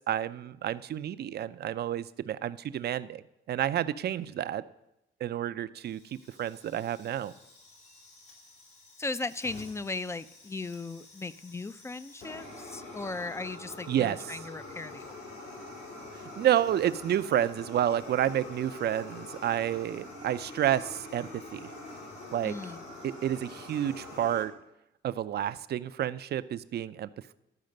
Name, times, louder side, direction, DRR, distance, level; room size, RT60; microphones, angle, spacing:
voice 1, 0.1-3.2 3.5-4.6 5.2-7.3 13.9-14.2 16.4-21.7 22.3-22.5 23.0-24.5 25.0-27.3, right 11 dB, 55° right, 14 dB, 0.5 m, -30 dB
Fire, 5.8-24.4, left 2 dB, 80° left, 3.4 m, -46 dB
voice 2, 9.0-15.2 22.4-22.8, left 3 dB, 15° left, 16 dB, 0.4 m, -37 dB
12.0 x 5.0 x 6.5 m, 0.87 s
cardioid pair, 90°, 20 cm